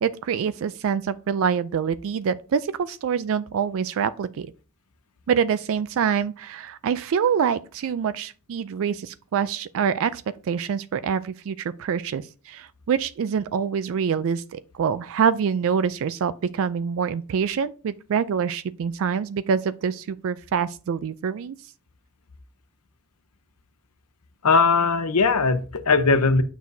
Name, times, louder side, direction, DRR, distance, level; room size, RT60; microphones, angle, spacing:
voice 1, 0.0-4.5 5.3-21.6, right 7 dB, 65° right, 0.3 m, -25 dB
voice 2, 24.4-26.4, left 4 dB, 90° left, 0.8 m, -19 dB
9.4 x 6.1 x 2.7 m
head